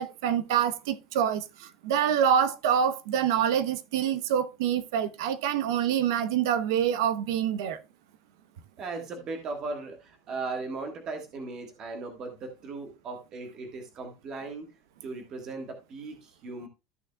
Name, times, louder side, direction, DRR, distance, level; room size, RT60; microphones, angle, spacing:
voice 1, 0.0-1.4 1.8-7.8, right 9 dB, 80° right, 0.9 m, -26 dB
voice 2, 8.8-14.7 15.0-16.7, right 3 dB, 30° right, 1.5 m, -37 dB
13.5 x 6.3 x 2.3 m
cardioid pair, 180°, 2 cm